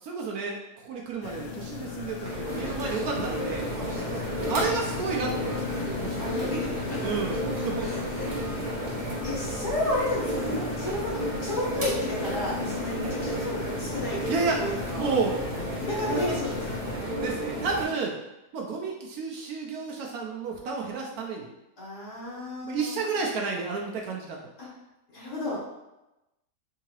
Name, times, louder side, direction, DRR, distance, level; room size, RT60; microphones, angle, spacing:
voice 1, 0.0-3.7 4.5-6.3 7.0-8.7 9.0-9.2 10.9-11.0 13.0-13.1 14.3-14.6 15.0-15.3 15.7-16.3 17.0-18.1 18.5-21.5 22.6-24.4, right 4 dB, 75° right, 0 dB, 1.0 m, -31 dB
sound 1, 1.2-17.0, left 6 dB, 70° left, 0.8 m, -37 dB
sound 2, 2.2-17.8, right 1 dB, 40° right, 0.7 m, -33 dB
Human voice, 2.4-8.4, equal, 30° left, 1.0 m, -47 dB
voice 2, 3.8-4.6 6.2-7.0 7.8-8.5 9.2-11.1 11.4-15.1 15.8-16.8 21.8-23.0 24.6-24.7 25.1-25.6, left 1 dB, 55° left, -8 dB, 1.7 m, -33 dB
3.7 x 2.7 x 2.9 m, 0.95 s
omnidirectional pair, 1.7 m